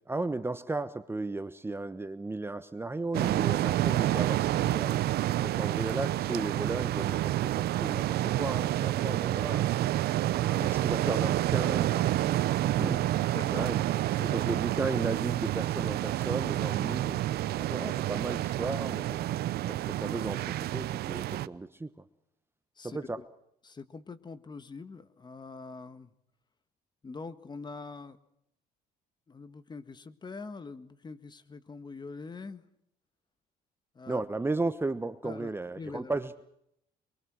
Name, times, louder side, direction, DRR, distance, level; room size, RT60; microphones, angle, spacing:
voice 1, 0.1-5.0 5.4-9.7 10.4-12.1 12.8-13.1 13.5-13.8 14.2-17.2 17.6-19.2 19.7-21.9 22.8-23.2 34.1-36.4, right 2 dB, 15° right, 12 dB, 1.1 m, -35 dB
sound 1, 3.1-21.5, right 14 dB, 70° right, 0.8 m, -29 dB
voice 2, 13.3-13.7 13.9-14.3 22.8-23.2 23.6-26.1 27.0-28.2 29.3-32.6 34.0-34.2 35.2-36.1, left 4 dB, 25° left, 12 dB, 1.7 m, -44 dB
26.0 x 23.5 x 6.4 m, 0.74 s
cardioid pair, 110°, 17 cm